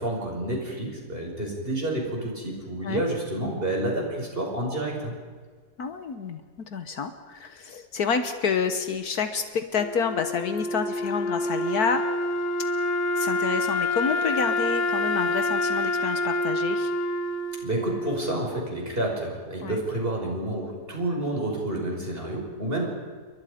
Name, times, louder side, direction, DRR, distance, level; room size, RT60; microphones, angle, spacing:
voice 1, 0.0-5.1 17.6-22.9, right 1 dB, 35° right, -1 dB, 5.9 m, -29 dB
voice 2, 5.8-6.4 6.7-12.1 13.2-16.9 19.6-19.8, left 5 dB, 75° left, 8 dB, 1.7 m, -28 dB
Wind instrument woodwind instrument, 9.8-18.8, left 2 dB, 55° left, 1.5 m, -27 dB
29.0 x 23.0 x 5.1 m, 1.5 s
omnidirectional pair, 1.6 m